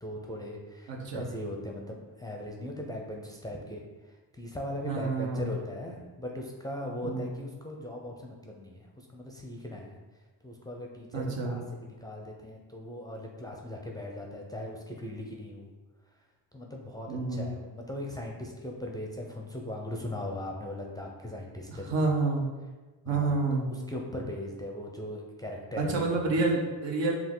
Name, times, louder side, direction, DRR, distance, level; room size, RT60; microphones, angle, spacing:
voice 1, 0.0-10.0 10.4-15.7 16.5-22.1 23.1-23.3 23.7-26.5, left 1 dB, 10° left, -1 dB, 0.5 m, -39 dB
voice 2, 0.9-1.3 4.8-5.5 7.0-7.3 11.1-11.6 17.1-17.5 21.7-22.5 23.0-23.7 25.8-27.2, right 3 dB, 70° right, 0 dB, 1.0 m, -29 dB
5.7 x 2.4 x 3.7 m, 1.2 s
cardioid pair, 105°, 46 cm